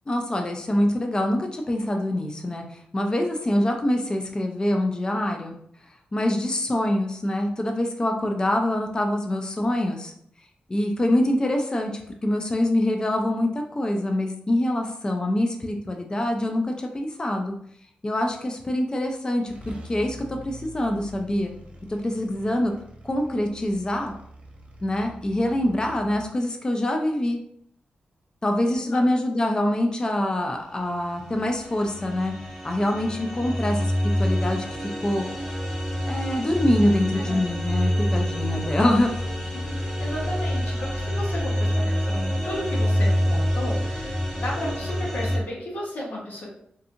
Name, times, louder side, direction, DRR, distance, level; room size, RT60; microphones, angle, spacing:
voice 1, 0.1-5.5 6.1-10.1 10.7-17.5 18.0-21.5 21.9-22.7 23.0-24.1 24.8-27.4 28.4-32.3 32.6-33.9 34.2-35.2 36.1-39.1, left 1 dB, 25° left, 3 dB, 0.4 m, -25 dB
sound 1, 19.0-19.1 19.5-26.3, right 1 dB, 40° right, 0.5 m, -44 dB
sound 2, 31.0-45.4, equal, ahead, 1.1 m, -27 dB
voice 2, 39.6-46.5, left 1 dB, 65° left, -4 dB, 1.0 m, -34 dB
2.6 x 2.6 x 2.4 m, 0.68 s
wide cardioid pair, 90°, 3 cm